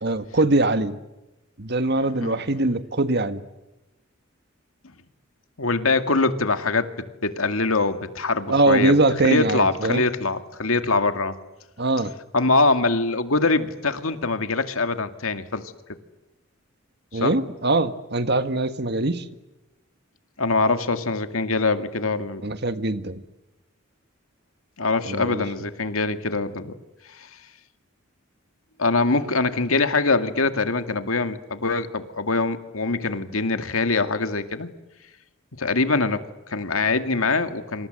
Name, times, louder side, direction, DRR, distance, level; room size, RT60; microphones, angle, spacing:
voice 1, 0.0-1.0 1.6-3.4 8.5-10.0 11.8-12.1 17.1-19.3 22.4-23.2 25.1-25.4, right 2 dB, 55° right, 10 dB, 1.7 m, -22 dB
voice 2, 5.6-6.9 7.2-8.9 9.2-11.4 12.3-15.6 17.1-17.3 20.4-22.4 24.8-26.8 27.2-27.3 28.8-34.7 35.6-37.9, left 3 dB, 85° left, 9 dB, 2.2 m, -23 dB
28.5 x 27.0 x 7.8 m, 1.0 s
head